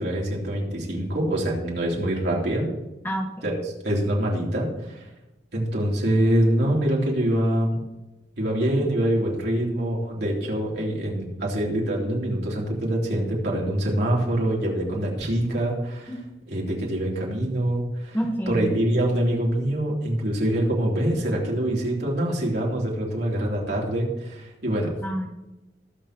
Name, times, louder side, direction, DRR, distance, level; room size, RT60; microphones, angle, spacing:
voice 1, 0.0-2.7 3.4-5.1 5.5-7.8 8.4-16.1 16.5-18.2 18.5-25.0, right 1 dB, 65° right, -3 dB, 3.5 m, -25 dB
voice 2, 3.0-3.6 18.1-18.8 25.0-25.3, right 1 dB, 10° left, 1 dB, 1.3 m, -28 dB
20.5 x 7.4 x 3.1 m, 1.0 s
head